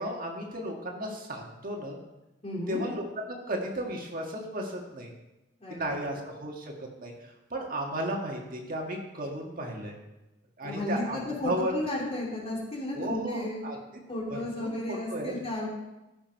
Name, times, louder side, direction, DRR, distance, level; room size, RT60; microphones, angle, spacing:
voice 1, 0.0-2.0 2.7-3.1 3.5-5.1 5.7-10.0 10.6-11.7 12.9-13.8 14.3-15.3, right 1 dB, 50° right, 1 dB, 1.7 m, -34 dB
voice 2, 2.4-2.8 5.6-6.0 10.6-13.6 14.1-15.7, left 1 dB, 35° left, -3 dB, 3.0 m, -33 dB
14.0 x 6.1 x 5.3 m, 0.99 s
head